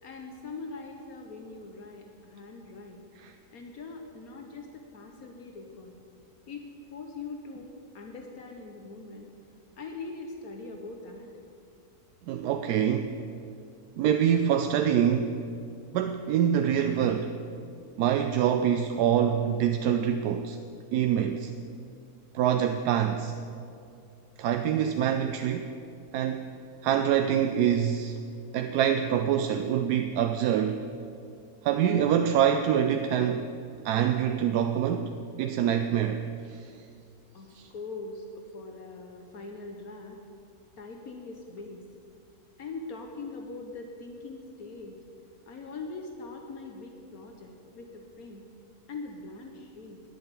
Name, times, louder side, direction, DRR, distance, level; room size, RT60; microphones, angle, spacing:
voice 1, 0.0-3.0 3.5-5.9 6.5-7.7 7.9-9.3 9.8-11.3 37.3-40.2 40.8-41.8 42.6-45.0 45.5-48.4 48.9-50.0, left 3 dB, 70° left, 3 dB, 1.4 m, -42 dB
voice 2, 12.3-13.1 14.0-15.4 15.9-17.3 18.0-20.6 20.9-21.5 22.3-23.3 24.4-25.8 26.1-26.5 26.8-28.2 28.5-30.8 31.6-33.5 33.8-35.1 35.4-36.7 37.5-37.7, right 9 dB, 90° right, 7 dB, 1.1 m, -25 dB
10.0 x 7.8 x 9.0 m, 2.5 s
omnidirectional pair, 1.6 m